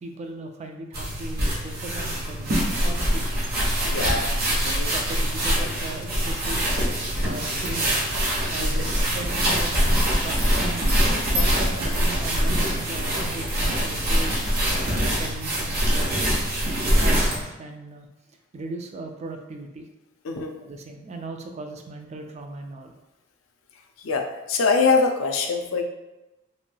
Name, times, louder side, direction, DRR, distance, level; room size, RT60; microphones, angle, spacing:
voice 1, 0.0-3.3 4.0-4.2 4.5-6.8 7.2-8.1 8.5-9.8 10.2-14.4 14.8-16.2 16.6-18.1 18.5-19.9 20.6-23.0, right 2 dB, 35° right, 4 dB, 0.3 m, -37 dB
sound 1, 0.9-17.4, equal, 50° right, 0.8 m, -24 dB
voice 2, 3.8-4.2 4.6-4.9 8.6-8.8 20.2-20.5 24.0-24.2 24.5-25.8, left 4 dB, 90° left, 4 dB, 0.4 m, -23 dB
3.0 x 2.6 x 2.2 m, 1.0 s
head